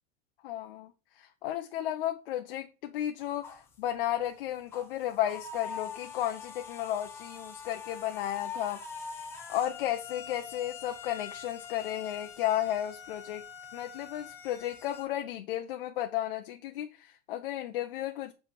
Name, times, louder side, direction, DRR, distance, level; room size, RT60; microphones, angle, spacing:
voice 1, 0.4-8.8 9.5-13.4 13.7-18.3, left 12 dB, 50° left, 0.8 m, -33 dB
sound 1, 3.2-3.8 4.2-4.4 4.7-15.1, left 6 dB, 5° left, 0.5 m, -44 dB
7.6 x 3.5 x 6.1 m
supercardioid pair, 180°, 36 cm